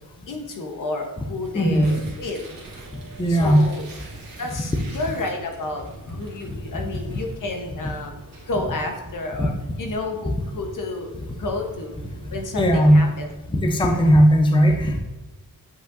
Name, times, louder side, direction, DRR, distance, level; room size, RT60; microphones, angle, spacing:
voice 1, 0.3-2.6 3.3-3.8 4.4-8.1 8.5-9.5 9.8-12.0 12.3-13.3 13.8-14.1, left 2 dB, 60° left, 3 dB, 1.1 m, -31 dB
Tearing, 1.4-7.6, right 3 dB, 65° right, 1.6 m, -47 dB
voice 2, 1.5-2.1 3.2-3.7 6.4-6.6 9.4-9.5 12.5-13.1 13.5-15.0, equal, 15° left, 3 dB, 0.6 m, -17 dB
sound 1, 2.5-13.4, right 3 dB, 45° right, 2.2 m, -44 dB
8.1 x 5.1 x 2.6 m, 1.1 s
wide cardioid pair, 150°, 36 cm